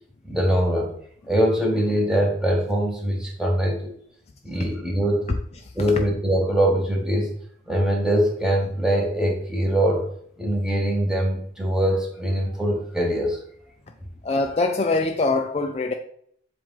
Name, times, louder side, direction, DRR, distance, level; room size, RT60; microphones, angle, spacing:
voice 1, 0.2-1.0 1.3-3.9 4.4-5.3 5.7-7.3 7.7-10.1 10.4-13.4, equal, 5° right, -1 dB, 1.1 m, -22 dB
voice 2, 14.2-15.9, left 3 dB, 35° left, 5 dB, 0.4 m, -23 dB
7.5 x 2.5 x 5.4 m, 0.64 s
head